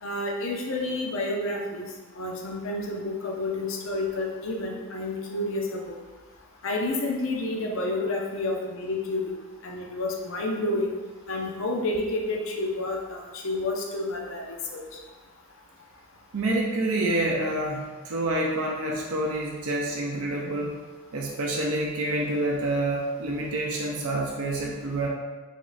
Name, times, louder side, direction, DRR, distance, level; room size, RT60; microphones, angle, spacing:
voice 1, 0.0-1.9 2.2-6.0 6.6-9.2 9.6-11.0 11.3-14.8, left 2 dB, 60° left, 0 dB, 0.6 m, -30 dB
voice 2, 16.3-20.8 21.1-25.1, right 1 dB, 70° right, -2 dB, 0.5 m, -27 dB
3.5 x 3.1 x 3.9 m, 1.3 s
head